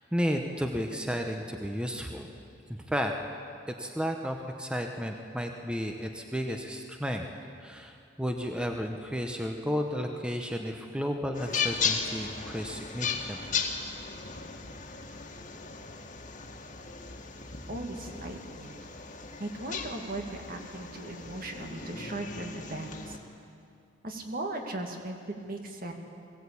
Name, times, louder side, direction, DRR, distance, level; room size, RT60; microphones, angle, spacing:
voice 1, 0.0-2.3 2.9-3.1 3.7-7.3 7.6-13.6, equal, 5° right, 3 dB, 1.0 m, -33 dB
sound 1, 11.3-23.2, left 5 dB, 45° left, 1.8 m, -36 dB
voice 2, 17.7-18.8 19.4-23.2 24.0-25.9, right 2 dB, 55° right, 3 dB, 2.2 m, -38 dB
21.5 x 16.5 x 8.5 m, 2.5 s
head